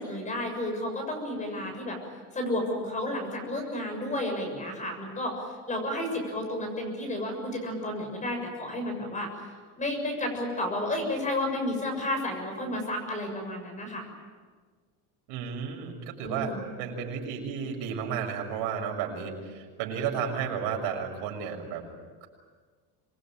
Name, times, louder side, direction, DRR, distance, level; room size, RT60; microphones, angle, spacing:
voice 1, 0.0-2.0 2.3-9.3 9.8-14.1 16.2-16.6, left 1 dB, 20° left, 4 dB, 6.9 m, -32 dB
voice 2, 15.3-21.8 22.2-22.3, right 7 dB, 80° right, 2 dB, 6.5 m, -33 dB
26.0 x 22.5 x 9.0 m, 1.5 s
cardioid pair, 165°, 39 cm